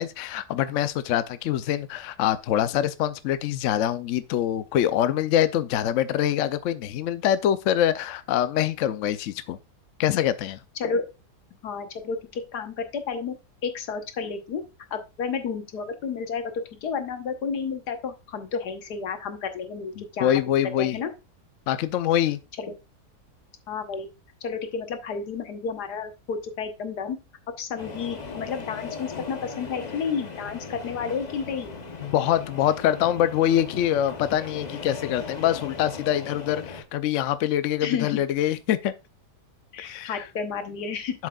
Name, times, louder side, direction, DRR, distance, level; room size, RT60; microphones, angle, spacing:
voice 1, 0.0-9.6 10.0-10.6 20.0-21.0 21.7-22.4 32.0-38.9 39.8-40.3 41.2-41.3, left 11 dB, 65° left, 0.8 m, -24 dB
voice 2, 11.6-13.4 13.6-14.6 14.9-21.1 22.6-22.7 23.7-24.1 24.4-27.2 27.6-31.8 37.8-38.2 39.7-41.1, left 5 dB, 80° left, 1.7 m, -31 dB
sound 1, 27.8-36.8, left 4 dB, 30° left, 0.9 m, -38 dB
7.7 x 7.3 x 2.3 m
omnidirectional pair, 1.7 m